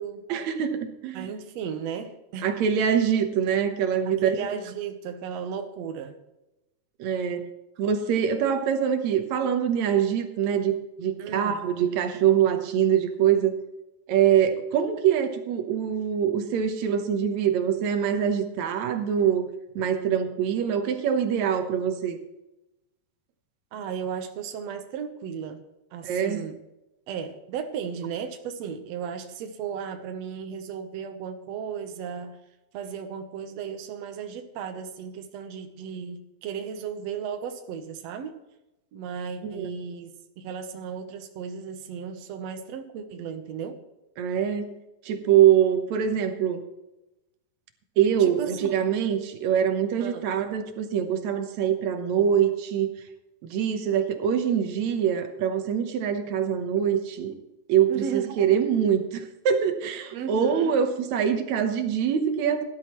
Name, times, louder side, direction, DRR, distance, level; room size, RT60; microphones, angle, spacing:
voice 1, 0.3-1.3 2.4-4.5 7.0-7.5 7.8-13.5 14.1-19.4 19.8-22.2 26.0-26.4 39.4-39.7 44.2-44.8 45.0-46.6 48.0-52.9 53.4-57.3 57.7-62.6, right 8 dB, 70° right, 7 dB, 1.8 m, -24 dB
voice 2, 1.1-2.5 4.0-6.2 11.2-11.6 23.7-25.6 25.9-26.6 27.1-32.4 32.7-38.3 38.9-43.8 48.2-48.7 50.0-50.2 57.9-58.4 60.1-60.8, right 7 dB, 85° right, 6 dB, 1.5 m, -35 dB
18.0 x 12.0 x 3.1 m, 0.95 s
omnidirectional pair, 4.4 m